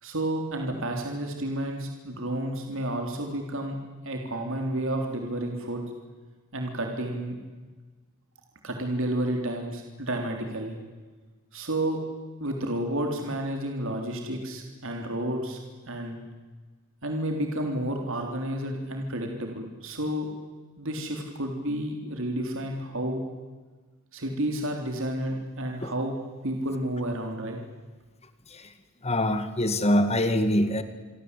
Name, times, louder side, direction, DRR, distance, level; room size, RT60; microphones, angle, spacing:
voice 1, 0.0-3.8 4.0-5.8 6.5-7.4 8.6-10.8 11.5-12.0 12.4-15.6 15.9-16.2 17.0-20.3 20.8-23.2 24.1-26.2 26.4-27.6, right 1 dB, 65° right, 3 dB, 3.7 m, -31 dB
voice 2, 29.0-30.8, left 1 dB, 30° left, 10 dB, 2.0 m, -24 dB
28.5 x 23.5 x 8.4 m, 1.3 s
head